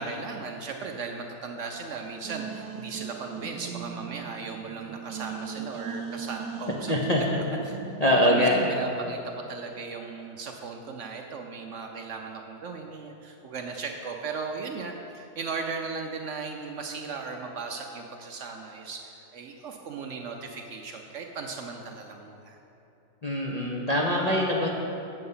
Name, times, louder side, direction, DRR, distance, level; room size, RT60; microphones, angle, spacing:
voice 1, 0.0-7.8 8.2-22.6, right 4 dB, 70° right, 3 dB, 0.7 m, -37 dB
sound 1, 2.2-8.7, right 7 dB, 90° right, 1.3 m, -39 dB
voice 2, 6.9-7.4 8.0-8.7 23.2-24.7, left 1 dB, 50° left, -3 dB, 0.4 m, -23 dB
7.8 x 7.7 x 5.5 m, 3.0 s
omnidirectional pair, 1.9 m